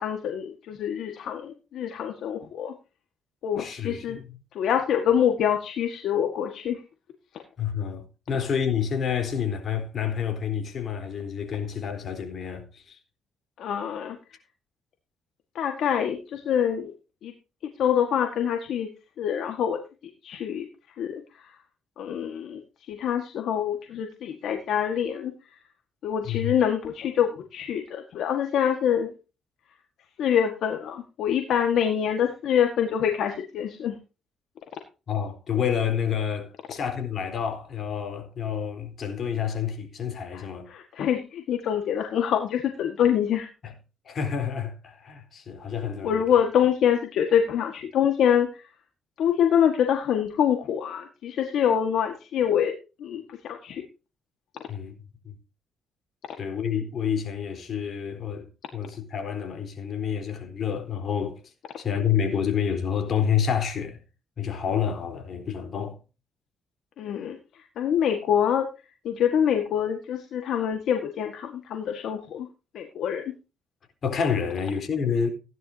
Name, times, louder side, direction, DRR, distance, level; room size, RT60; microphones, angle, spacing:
voice 1, 0.0-2.7 3.4-4.2 4.5-6.8 13.6-14.2 15.5-16.9 17.2-17.3 17.8-18.9 19.2-19.8 20.2-20.7 21.0-21.5 22.0-22.6 22.9-25.3 26.0-29.1 30.2-34.0 40.3-43.5 46.0-48.7 49.2-52.7 53.0-53.8 67.0-67.4 67.8-68.7 69.0-72.5 72.7-73.2, left 9 dB, 75° left, 1.7 m, -25 dB
voice 2, 3.6-4.4 7.6-13.0 26.2-26.5 35.1-40.7 43.6-43.7 44.0-46.2 54.7-54.9 55.2-55.3 56.4-58.5 58.7-64.0 64.4-66.0 74.0-75.3, left 7 dB, 55° left, 3.9 m, -29 dB
16.5 x 11.0 x 2.8 m
cardioid pair, 90°, 0 cm